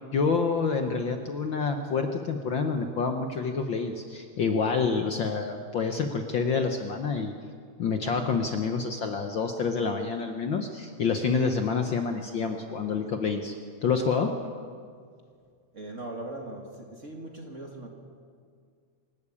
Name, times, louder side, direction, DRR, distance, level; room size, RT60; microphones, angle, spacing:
voice 1, 0.1-7.3 7.8-13.5 13.8-14.4, left 5 dB, 70° left, 5 dB, 1.1 m, -28 dB
voice 2, 15.7-17.9, right 2 dB, 30° right, 1 dB, 1.8 m, -39 dB
27.0 x 12.0 x 8.6 m, 2.1 s
omnidirectional pair, 3.5 m